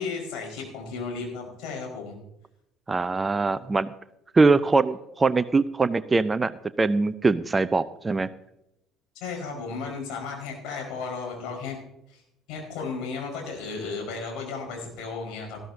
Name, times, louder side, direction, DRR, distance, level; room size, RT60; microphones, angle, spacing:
voice 1, 0.0-2.2 9.2-11.8 12.1-12.2 12.5-15.6, left 4 dB, 60° left, 0 dB, 4.7 m, -34 dB
voice 2, 2.9-3.9 4.3-8.3, right 3 dB, 20° right, 15 dB, 0.5 m, -22 dB
18.5 x 14.0 x 2.7 m, 0.83 s
figure-of-eight pair, 60°, 0 cm